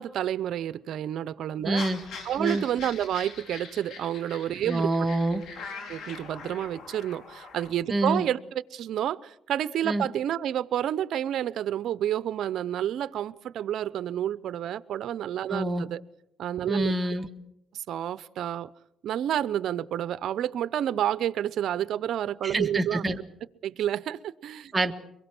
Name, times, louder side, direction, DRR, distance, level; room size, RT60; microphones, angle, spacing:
voice 1, 0.0-1.8 2.2-4.9 5.9-16.0 16.4-16.9 17.7-18.7 19.0-23.0 23.6-24.7, right 11 dB, 75° right, 0.7 m, -29 dB
voice 2, 1.6-2.0 2.4-2.6 4.6-5.4 7.9-8.3 9.8-10.1 15.5-15.9 16.7-17.3 22.4-23.2 24.7-24.9, right 1 dB, 20° right, 1.8 m, -26 dB
sound 1, 1.7-7.7, left 5 dB, 75° left, 5.0 m, -43 dB
24.0 x 22.5 x 6.1 m
cardioid pair, 90°, 0 cm